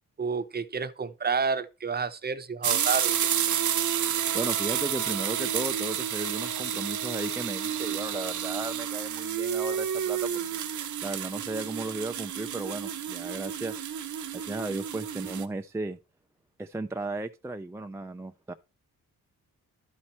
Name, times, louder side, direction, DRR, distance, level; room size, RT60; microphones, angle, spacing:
voice 1, 0.2-3.3, right 5 dB, 30° right, 0.7 m, -30 dB
sound 1, 2.6-15.5, right 9 dB, 60° right, 0.8 m, -30 dB
voice 2, 4.3-10.6 11.0-13.9 14.3-16.0 16.6-18.5, right 2 dB, 10° right, 0.3 m, -35 dB
11.5 x 4.4 x 4.3 m
cardioid pair, 90°, 34 cm